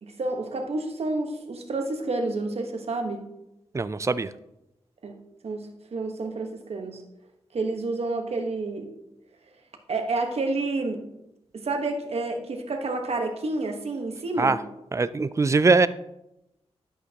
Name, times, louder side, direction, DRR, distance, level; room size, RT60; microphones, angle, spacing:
voice 1, 0.0-3.2 5.0-5.2 5.4-7.0 7.5-8.9 9.9-11.1 11.5-14.6, right 2 dB, 65° right, 4 dB, 1.2 m, -29 dB
voice 2, 3.7-4.3 14.4-14.6 14.9-15.9, right 3 dB, 25° right, 15 dB, 0.3 m, -21 dB
10.5 x 8.0 x 2.9 m, 0.87 s
wide cardioid pair, 120°, 11 cm